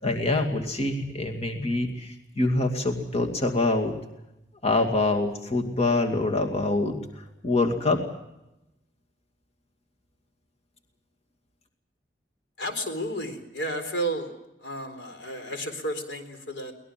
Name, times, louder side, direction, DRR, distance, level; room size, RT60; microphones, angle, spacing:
voice 1, 0.0-3.9 4.6-8.0, left 2 dB, 35° left, 3 dB, 2.4 m, -25 dB
voice 2, 12.6-14.3 14.6-16.7, right 1 dB, 90° left, 7 dB, 4.0 m, -32 dB
23.0 x 20.0 x 7.6 m, 0.90 s
head